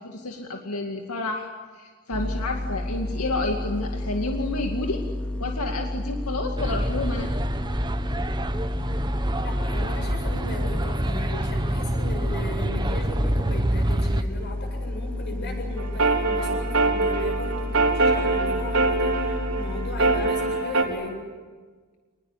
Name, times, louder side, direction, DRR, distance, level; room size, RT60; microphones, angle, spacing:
voice 1, 0.0-1.5 1.8-5.0 5.4-7.3, left 2 dB, 85° left, 2 dB, 2.3 m, -30 dB
sound 1, 2.1-20.3, left 1 dB, 5° left, 2.0 m, -31 dB
sound 2, 6.6-14.2, right 1 dB, 20° right, 1.0 m, -27 dB
voice 2, 9.4-21.2, left 1 dB, 50° left, 2 dB, 7.9 m, -36 dB
sound 3, 15.8-20.8, right 3 dB, 65° right, 4.0 m, -24 dB
27.5 x 21.0 x 10.0 m, 1.5 s
head